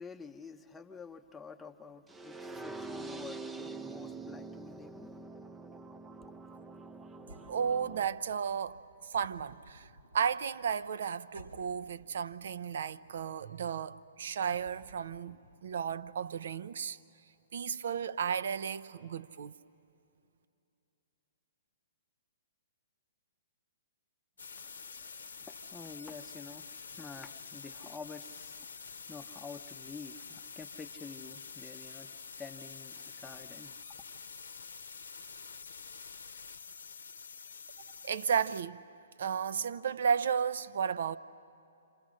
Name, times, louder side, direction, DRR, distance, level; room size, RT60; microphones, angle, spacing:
voice 1, 0.0-5.1 24.5-32.1 32.4-33.8, left 5 dB, 5° left, 0.9 m, -49 dB
sound 1, 2.1-8.1, right 3 dB, 10° right, 0.6 m, -45 dB
sound 2, 7.2-16.2, right 1 dB, 75° right, 1.6 m, -57 dB
voice 2, 7.5-9.9 10.1-17.0 17.5-19.5 38.0-38.8 39.2-41.2, right 7 dB, 55° right, 0.6 m, -33 dB
sound 3, 24.4-38.6, left 5 dB, 70° left, 0.8 m, -47 dB
28.0 x 27.0 x 6.4 m
figure-of-eight pair, 120°, 0 cm